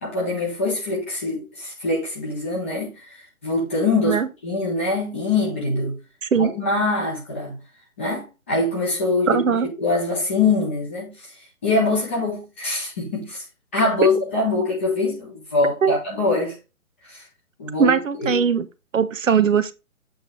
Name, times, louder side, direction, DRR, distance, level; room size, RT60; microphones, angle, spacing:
voice 1, 0.0-3.0 3.4-6.0 6.3-7.6 8.0-11.1 11.6-13.4 13.7-16.6 17.1-17.2 17.6-18.4, left 3 dB, 10° left, 0.6 m, -23 dB
voice 2, 9.3-9.7 15.8-16.0 17.8-18.7 18.9-19.7, right 6 dB, 60° right, 0.7 m, -19 dB
7.8 x 3.0 x 5.0 m
figure-of-eight pair, 140°, 43 cm